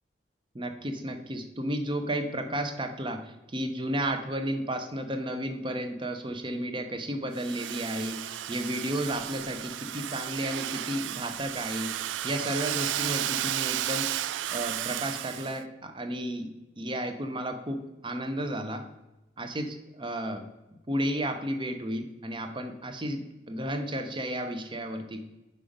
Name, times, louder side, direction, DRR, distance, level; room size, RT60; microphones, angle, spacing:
voice 1, 0.5-14.1 14.5-16.5 16.8-18.9 19.4-20.4 20.9-25.2, right 1 dB, 25° right, 6 dB, 0.7 m, -33 dB
Domestic sounds home sounds, 7.3-15.6, right 12 dB, 90° right, 0.3 m, -33 dB
5.6 x 4.9 x 5.1 m, 0.99 s
head